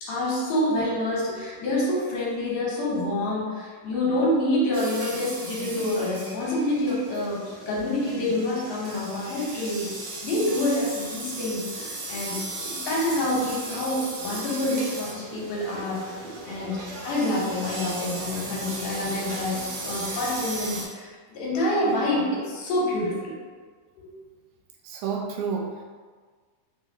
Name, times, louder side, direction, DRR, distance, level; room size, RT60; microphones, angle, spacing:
voice 1, 0.0-12.4 12.7-23.3 24.0-24.1, left 1 dB, 75° left, -5 dB, 2.4 m, -27 dB
sound 1, 4.7-20.8, right 2 dB, 65° right, 1.7 m, -36 dB
voice 2, 24.8-25.8, right 5 dB, 90° right, 1 dB, 2.3 m, -30 dB
5.9 x 2.8 x 2.7 m, 1.5 s
omnidirectional pair, 3.9 m